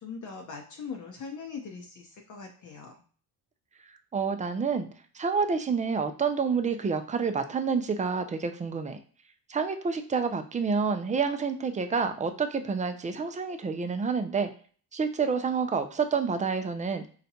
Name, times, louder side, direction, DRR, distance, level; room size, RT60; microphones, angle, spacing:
voice 1, 0.0-2.9, left 5 dB, 50° left, 0 dB, 0.7 m, -41 dB
voice 2, 4.1-4.9 5.1-9.0 9.5-14.5 14.9-17.1, right 5 dB, 20° right, 7 dB, 0.4 m, -28 dB
4.0 x 2.2 x 2.8 m, 0.43 s
cardioid pair, 85°, 40 cm